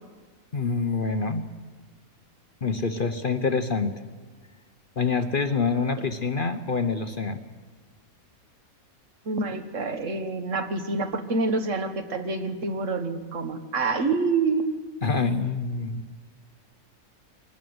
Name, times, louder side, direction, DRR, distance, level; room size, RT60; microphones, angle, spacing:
voice 1, 0.5-1.4 2.6-3.9 5.0-7.4 15.0-16.0, left 4 dB, 40° left, 9 dB, 1.0 m, -26 dB
voice 2, 9.3-14.8, right 3 dB, 60° right, 7 dB, 1.9 m, -27 dB
23.0 x 20.0 x 7.9 m, 1.5 s
omnidirectional pair, 1.5 m